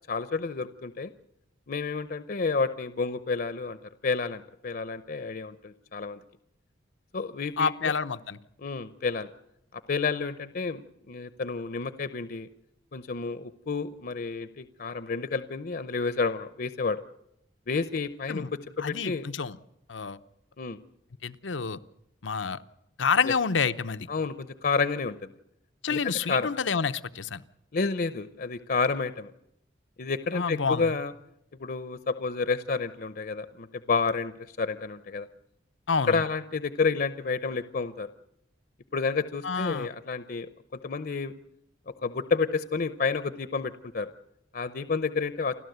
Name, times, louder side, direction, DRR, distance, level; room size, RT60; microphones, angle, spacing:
voice 1, 0.1-1.1 1.7-3.8 4.0-6.2 7.1-7.9 8.6-9.3 9.7-12.5 12.9-17.0 17.7-18.5 18.9-19.2 20.6-20.8 23.3-23.4 24.1-25.2 25.9-26.5 27.7-29.3 30.0-31.1 31.6-34.3 34.6-35.3 36.1-38.1 38.9-40.5 40.8-41.3 42.0-44.1 44.5-45.5, left 4 dB, 55° left, 13 dB, 0.7 m, -30 dB
voice 2, 7.6-8.4 18.3-18.5 18.8-19.6 19.9-20.2 21.2-21.8 22.2-22.6 23.0-24.1 25.8-27.4 30.3-30.9 35.9-36.2 39.4-39.9, left 5 dB, 90° left, 12 dB, 0.8 m, -28 dB
29.0 x 12.5 x 8.0 m, 0.80 s
head